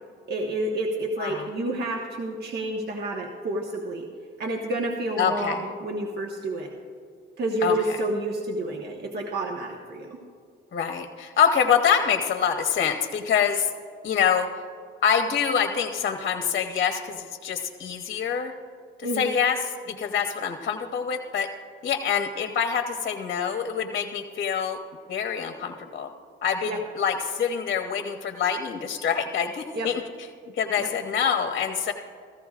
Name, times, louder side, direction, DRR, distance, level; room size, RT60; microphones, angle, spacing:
voice 1, 0.3-4.1 4.4-6.7 7.4-10.2 19.0-19.3 26.7-26.8 29.7-29.9 30.8-30.9, right 1 dB, 55° right, 0 dB, 1.3 m, -29 dB
voice 2, 5.2-5.6 7.6-8.0 10.7-13.7 14.0-14.5 15.0-18.5 19.0-21.5 21.8-24.8 25.1-26.1 26.4-30.0 30.5-31.9, left 7 dB, 55° left, 5 dB, 0.9 m, -25 dB
16.5 x 14.5 x 2.4 m, 2.3 s
cardioid pair, 90°, 20 cm